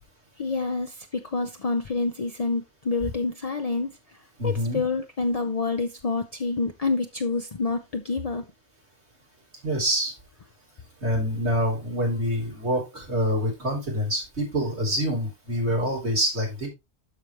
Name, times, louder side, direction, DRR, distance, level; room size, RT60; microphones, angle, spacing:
voice 1, 0.4-3.9 4.4-8.4, left 3 dB, 40° left, 0.7 m, -27 dB
voice 2, 4.4-4.8 9.6-10.1 11.0-16.7, equal, 90° right, 3.8 m, -26 dB
12.5 x 5.0 x 3.0 m
omnidirectional pair, 1.1 m